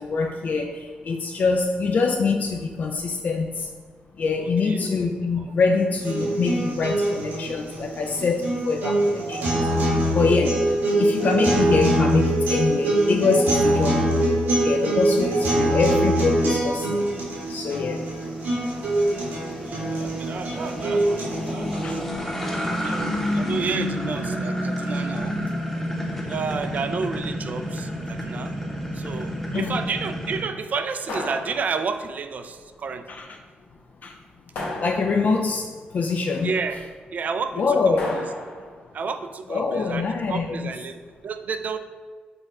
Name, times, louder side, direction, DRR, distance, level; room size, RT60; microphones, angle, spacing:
voice 1, 0.0-3.7 4.2-9.7 10.1-10.6 11.0-14.3 14.6-17.2 17.5-18.0 21.8-22.0 22.8-22.9 29.5-29.8 33.1-33.2 34.0-34.2 34.8-36.5 37.6-38.2 39.5-40.7, left 4 dB, 55° left, 2 dB, 0.3 m, -24 dB
voice 2, 4.4-4.9 5.4-5.5 19.6-22.0 22.7-25.4 26.3-28.5 28.9-33.2 36.4-36.8 37.1-38.2 38.9-41.8, right 5 dB, 55° right, 9 dB, 0.3 m, -31 dB
sound 1, 6.0-22.0, right 1 dB, 85° right, 1.4 m, -23 dB
sound 2, 14.3-30.4, equal, 10° left, 0.8 m, -31 dB
sound 3, 31.1-32.2 34.5-35.5 38.0-38.8, left 2 dB, 80° left, 1.0 m, -34 dB
5.2 x 2.3 x 4.2 m, 1.5 s
cardioid pair, 85°, 3 cm